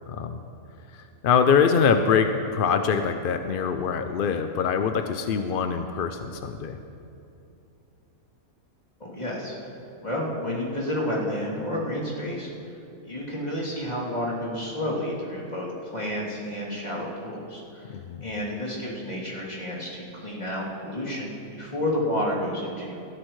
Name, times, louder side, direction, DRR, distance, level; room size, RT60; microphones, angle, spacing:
voice 1, 0.1-0.4 0.9-6.8 17.9-18.2, left 6 dB, 65° left, 7 dB, 0.5 m, -24 dB
voice 2, 9.0-9.8 10.0-12.5 13.0-23.1, left 1 dB, 25° left, -7 dB, 3.2 m, -30 dB
18.5 x 14.0 x 3.2 m, 2.7 s
omnidirectional pair, 1.5 m